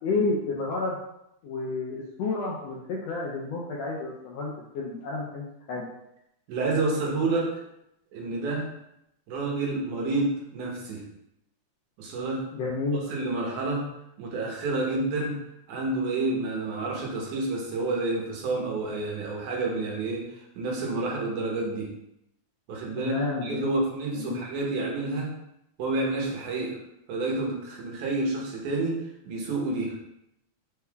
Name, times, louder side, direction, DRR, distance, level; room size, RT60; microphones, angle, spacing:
voice 1, 0.0-1.0 1.4-5.8 12.5-13.1 23.0-23.8 24.1-24.4, left 3 dB, 80° left, -4 dB, 1.5 m, -30 dB
voice 2, 6.5-7.6 8.1-8.7 9.3-11.0 12.0-12.5 13.1-13.9 14.2-15.4 15.7-20.3 20.6-21.9 22.7-23.2 23.4-25.3 25.8-26.8 27.1-29.0 29.2-30.0, right 2 dB, 80° right, -1 dB, 2.4 m, -29 dB
5.4 x 3.5 x 2.3 m, 0.82 s
omnidirectional pair, 3.5 m